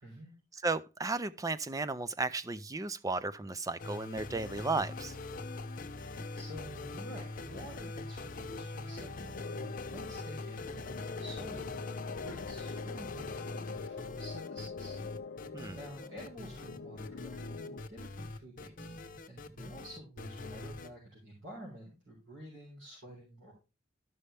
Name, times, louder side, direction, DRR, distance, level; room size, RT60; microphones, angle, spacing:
voice 1, 0.0-0.3 6.3-15.0 15.4-18.9 19.3-23.5, equal, 85° right, 4.0 m, -49 dB
voice 2, 0.6-5.2 15.5-15.8, right 3 dB, 20° right, 0.4 m, -34 dB
sound 1, 3.8-20.9, left 2 dB, 45° left, 0.8 m, -42 dB
sound 2, 9.3-17.8, left 5 dB, 65° left, 0.4 m, -45 dB
13.0 x 5.6 x 3.3 m
head